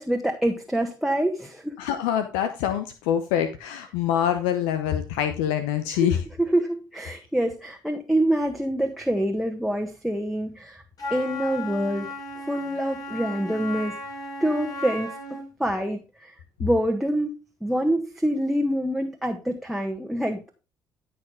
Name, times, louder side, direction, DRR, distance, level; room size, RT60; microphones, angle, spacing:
voice 1, 0.0-1.7 5.9-6.1 6.4-10.8 11.1-12.1 12.5-14.0 14.4-15.1 15.6-16.3 16.6-17.3 17.6-20.5, right 1 dB, ahead, 2 dB, 1.6 m, -26 dB
voice 2, 1.8-6.2, left 10 dB, 70° left, 9 dB, 0.9 m, -25 dB
Wind instrument woodwind instrument, 11.0-15.5, left 1 dB, 40° left, 5.3 m, -35 dB
14.0 x 5.9 x 3.5 m, 0.31 s
figure-of-eight pair, 50°, 10 cm